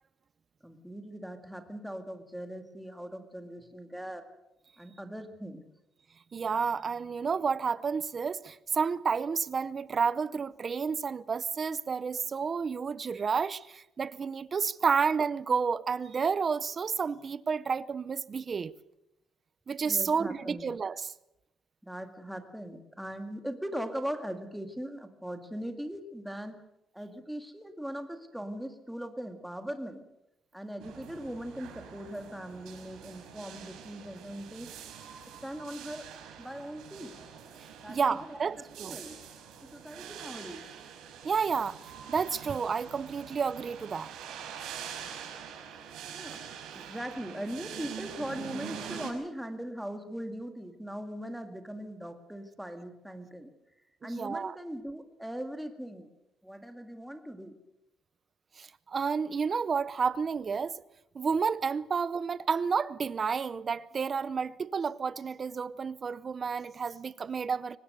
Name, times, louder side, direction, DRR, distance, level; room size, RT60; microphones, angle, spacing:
voice 1, 0.6-4.3 4.8-5.6 19.8-20.7 21.8-26.6 26.9-30.0 30.5-34.7 35.3-36.1 36.4-37.2 37.8-39.2 39.6-40.7 46.1-46.4 46.7-53.5 54.0-56.1 56.4-57.6, equal, ahead, 2.0 m, -40 dB
voice 2, 6.3-18.7 19.7-21.1 37.9-39.0 41.2-41.8 42.1-44.1 54.0-54.5 58.6-60.8 61.1-67.8, right 5 dB, 30° right, 0.7 m, -30 dB
sound 1, 30.8-49.1, right 8 dB, 85° right, 5.6 m, -45 dB
23.0 x 20.0 x 6.8 m
cardioid pair, 150°, 0 cm